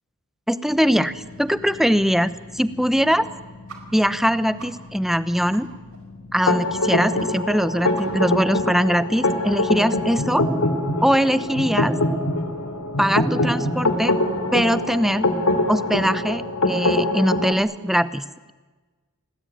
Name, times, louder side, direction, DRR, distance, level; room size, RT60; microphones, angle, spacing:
voice 1, 0.5-3.3 3.9-5.7 6.3-10.5 11.0-12.0 13.0-14.2 14.5-15.3 15.7-18.2, equal, ahead, 14 dB, 0.9 m, -21 dB
sound 1, 0.6-16.7, left 2 dB, 50° left, 3.7 m, -43 dB
sound 2, 3.7-3.8 4.1-4.2 4.6-4.7 5.1-5.2 5.5-5.6 5.9-6.0 6.4-6.5 6.8-6.9 7.2-7.3 7.6-7.7 7.9-8.4, right 5 dB, 80° right, 4.7 m, -41 dB
sound 3, 6.5-17.5, left 1 dB, 85° left, 3.6 m, -23 dB
29.0 x 20.5 x 9.3 m, 1.3 s
head